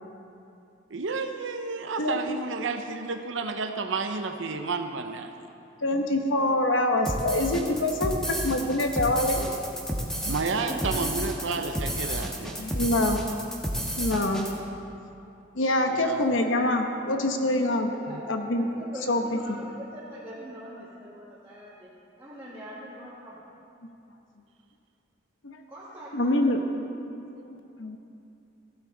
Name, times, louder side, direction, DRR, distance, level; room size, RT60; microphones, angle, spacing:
voice 1, 0.9-5.3 10.3-12.6 15.9-16.4 18.1-18.2, right 4 dB, 75° right, 6 dB, 0.7 m, -31 dB
voice 2, 2.0-2.4 5.8-9.5 12.6-13.2 14.0-14.5 15.6-17.9 18.3-18.6 19.1-19.2 25.4-25.6 26.1-26.8 27.4-28.0, left 1 dB, 80° left, 4 dB, 1.0 m, -25 dB
sound 1, 7.1-14.5, equal, 5° left, 1.3 m, -31 dB
voice 3, 10.7-11.3 17.9-18.3 18.6-23.4 25.7-26.7, equal, 15° right, -10 dB, 1.8 m, -42 dB
15.5 x 12.5 x 3.9 m, 2.8 s
head